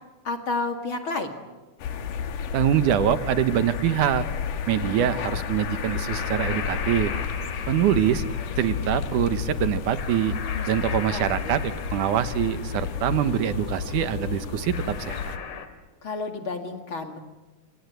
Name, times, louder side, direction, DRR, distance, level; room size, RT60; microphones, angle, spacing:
voice 1, 0.2-1.4 10.5-11.6 16.0-17.2, left 3 dB, 45° left, 5 dB, 2.6 m, -31 dB
sound 1, 1.8-15.4, left 7 dB, 85° left, 3.2 m, -31 dB
voice 2, 2.5-4.2 4.7-7.1 7.7-8.3 8.6-10.4 10.7-15.3, right 10 dB, 75° right, 11 dB, 2.6 m, -24 dB
sound 2, 6.1-15.7, left 6 dB, 70° left, 3.7 m, -38 dB
27.0 x 27.0 x 8.1 m, 1.2 s
omnidirectional pair, 3.6 m